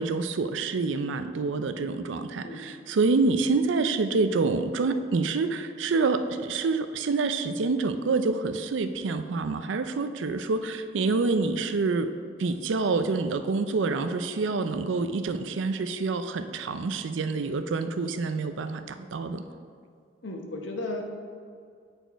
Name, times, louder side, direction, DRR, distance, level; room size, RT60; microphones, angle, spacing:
voice 1, 0.0-12.1 12.4-19.4, right 3 dB, 85° right, 10 dB, 0.4 m, -27 dB
voice 2, 20.2-21.0, left 2 dB, 85° left, 2 dB, 0.9 m, -34 dB
8.0 x 4.3 x 4.5 m, 2.2 s
head